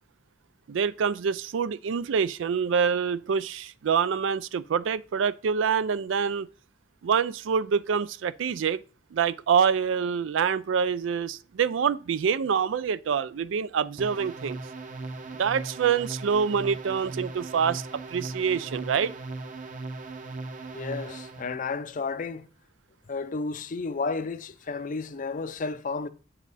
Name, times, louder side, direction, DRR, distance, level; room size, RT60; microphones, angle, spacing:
voice 1, 0.7-6.5 7.0-8.8 9.1-14.6 15.4-17.8 18.1-19.1, right 6 dB, 85° right, 0.4 m, -26 dB
sound 1, 14.0-21.5, right 3 dB, 45° right, 0.9 m, -38 dB
voice 2, 20.7-22.5 23.1-26.1, left 4 dB, 45° left, 0.5 m, -32 dB
7.4 x 7.1 x 4.1 m
head